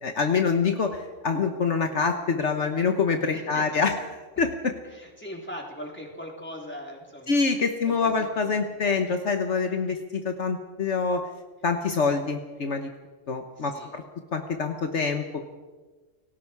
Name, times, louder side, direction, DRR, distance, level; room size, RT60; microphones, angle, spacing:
voice 1, 0.0-3.9 4.4-4.7 7.3-11.3 11.6-12.9 13.3-14.0 14.3-15.5, left 5 dB, 65° left, 5 dB, 1.5 m, -25 dB
voice 2, 3.3-3.9 4.9-7.4 7.8-8.7 13.6-14.0, equal, 10° left, -1 dB, 4.2 m, -40 dB
29.5 x 19.0 x 4.8 m, 1.3 s
omnidirectional pair, 1.3 m